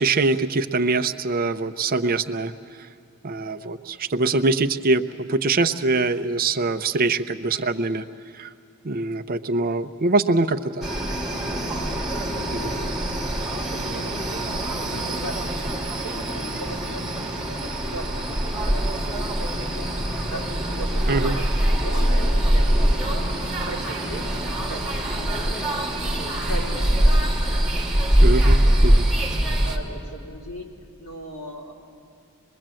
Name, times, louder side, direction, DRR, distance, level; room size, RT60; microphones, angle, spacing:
voice 1, 0.0-2.5 3.2-8.1 8.4-8.5 8.8-10.8 12.5-12.9 21.1-21.4 28.2-29.1, right 3 dB, 40° right, 9 dB, 0.6 m, -23 dB
sound 1, 10.8-29.8, right 1 dB, 5° right, 2.2 m, -23 dB
voice 2, 13.5-19.9 20.3-27.4 27.9-29.1 29.6-30.7 31.0-31.7, right 1 dB, 85° left, -2 dB, 3.7 m, -39 dB
24.5 x 21.5 x 7.6 m, 2.4 s
head